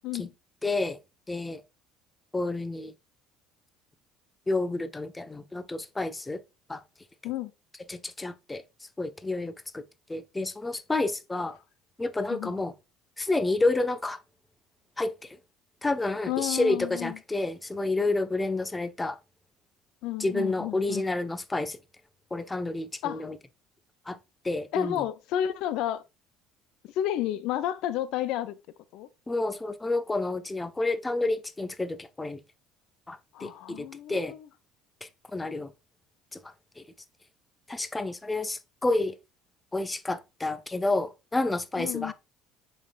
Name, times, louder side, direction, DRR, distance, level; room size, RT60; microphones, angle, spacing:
voice 1, 0.6-1.0 1.3-1.6 2.3-2.9 4.5-6.4 6.7-6.8 7.9-8.6 9.0-9.8 10.1-11.6 12.0-12.7 13.2-14.2 15.0-15.1 15.8-19.2 20.2-21.8 22.3-23.4 24.1-24.2 24.4-25.0 29.3-32.4 33.1-34.3 35.0-35.7 36.3-36.8 37.7-39.2 39.7-42.1, left 2 dB, 15° left, 0.8 m, -29 dB
voice 2, 12.3-12.6 16.3-17.2 20.0-21.1 23.0-23.3 24.7-26.0 26.9-28.6 28.9-29.1 33.3-34.5 41.8-42.1, left 12 dB, 70° left, 0.5 m, -31 dB
7.9 x 5.5 x 2.3 m
hypercardioid pair, 70°, 0 cm